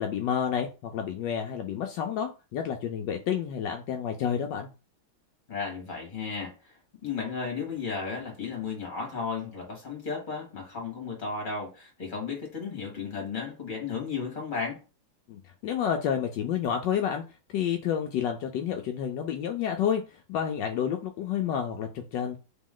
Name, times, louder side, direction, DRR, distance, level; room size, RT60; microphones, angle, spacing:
voice 1, 0.0-4.7 15.3-17.2 17.5-20.0 20.3-22.4, left 8 dB, 75° left, 1.2 m, -29 dB
voice 2, 5.5-6.7 7.0-14.8, left 5 dB, 25° left, 1.8 m, -34 dB
3.6 x 3.1 x 3.7 m
omnidirectional pair, 2.0 m